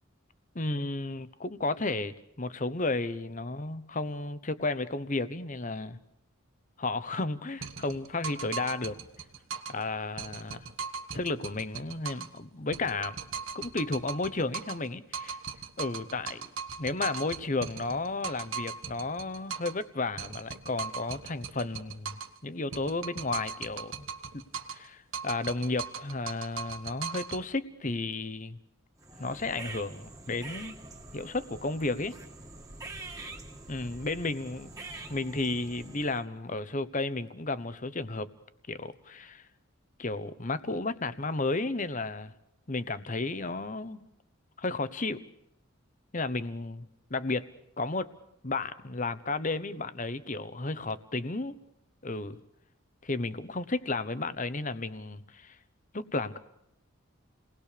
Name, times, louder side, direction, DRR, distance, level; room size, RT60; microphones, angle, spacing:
voice 1, 0.5-6.0 6.8-9.0 9.7-10.7 11.1-13.2 13.5-15.4 15.8-16.5 16.8-24.1 24.3-24.4 24.7-28.6 29.2-30.8 31.1-32.2 33.7-34.7 35.1-38.3 38.7-39.4 40.0-42.3 42.7-44.0 44.6-45.2 46.1-47.5 47.8-48.1 48.4-51.6 52.0-52.4 53.0-55.6 55.9-56.4, left 3 dB, 40° left, 1.1 m, -33 dB
sound 1, 7.6-9.8 10.2-12.4 12.7-14.9 15.1-19.8 20.2-22.4 22.7-24.9 25.1-27.4, right 6 dB, 70° right, 1.4 m, -39 dB
sound 2, 29.0-36.3, right 2 dB, 15° right, 2.2 m, -45 dB
29.5 x 20.0 x 6.8 m
head